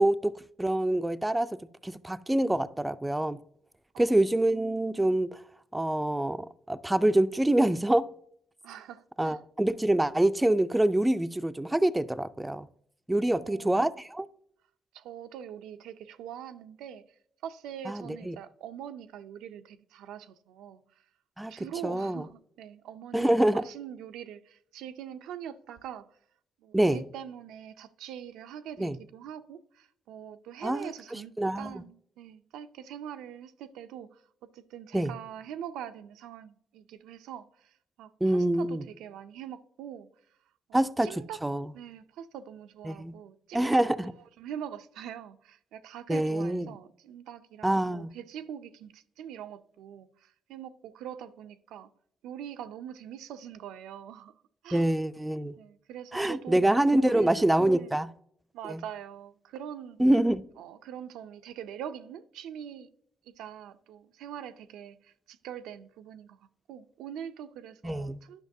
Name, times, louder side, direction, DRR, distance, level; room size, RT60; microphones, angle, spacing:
voice 1, 0.0-3.4 4.0-5.4 5.7-8.1 9.2-12.7 13.1-14.3 17.9-18.4 21.4-22.2 23.1-23.7 26.7-27.0 28.8-29.0 30.6-31.8 34.9-35.1 38.2-38.8 40.7-41.7 42.8-43.1 43.5-44.1 46.1-46.7 47.6-48.1 54.7-55.5 56.1-58.1 58.7-58.8 60.0-60.4 67.8-68.2, right 1 dB, 10° right, 0.3 m, -26 dB
voice 2, 8.6-9.4 13.2-13.8 14.9-17.0 17.4-20.8 21.5-26.2 26.6-40.1 40.7-41.4 41.7-43.8 44.4-51.9 52.2-54.3 54.6-54.9 55.6-56.7 57.0-57.9 58.5-60.0 60.6-62.9 63.2-68.4, right 9 dB, 90° right, 0.4 m, -43 dB
10.5 x 5.9 x 2.7 m
cardioid pair, 90°, 0 cm